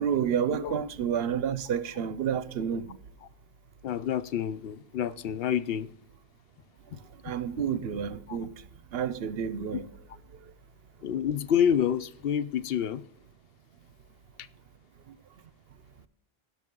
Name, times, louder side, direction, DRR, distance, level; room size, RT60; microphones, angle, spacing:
voice 1, 0.0-3.0 7.2-8.5 8.9-9.9, right 8 dB, 75° right, 0.9 m, -29 dB
voice 2, 3.8-5.9 8.3-8.4 11.0-13.0, left 9 dB, 70° left, 0.8 m, -28 dB
16.5 x 6.0 x 3.7 m
omnidirectional pair, 1.0 m